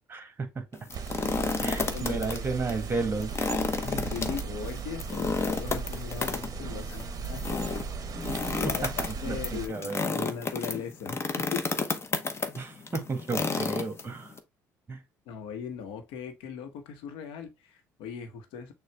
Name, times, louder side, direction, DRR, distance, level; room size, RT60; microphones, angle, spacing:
voice 1, 0.1-0.6 1.6-3.3 8.3-8.4 9.0-10.3 12.5-14.3 14.9-15.0, right 3 dB, 25° right, 1.5 m, -33 dB
sound 1, 0.8-2.4 2.7-2.8 3.2-14.4, left 4 dB, 30° left, 0.9 m, -31 dB
sound 2, 0.9-9.7, right 5 dB, 45° right, 0.8 m, -37 dB
voice 2, 1.6-2.7 3.8-7.9 8.2-11.2 11.5-11.7 15.3-18.7, left 7 dB, 75° left, 1.0 m, -39 dB
6.5 x 2.4 x 3.3 m
hypercardioid pair, 65°, 9 cm